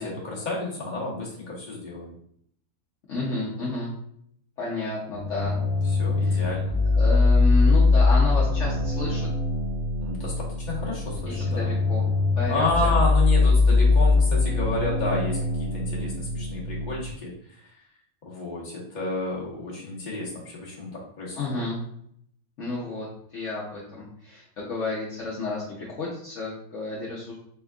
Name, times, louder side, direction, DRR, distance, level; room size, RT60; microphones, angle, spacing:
voice 1, 0.0-2.1 5.9-6.7 10.0-11.7 12.5-17.3 18.2-21.7, left 2 dB, 30° left, -4 dB, 1.3 m, -31 dB
voice 2, 3.1-3.9 4.6-5.6 6.2-6.4 6.9-9.3 11.3-12.0 12.4-12.9 21.4-21.8 22.6-27.4, left 2 dB, 55° left, -5 dB, 1.1 m, -31 dB
sound 1, 5.1-17.1, left 3 dB, 80° right, 1.5 m, -22 dB
4.5 x 3.9 x 2.4 m, 0.68 s
omnidirectional pair, 1.7 m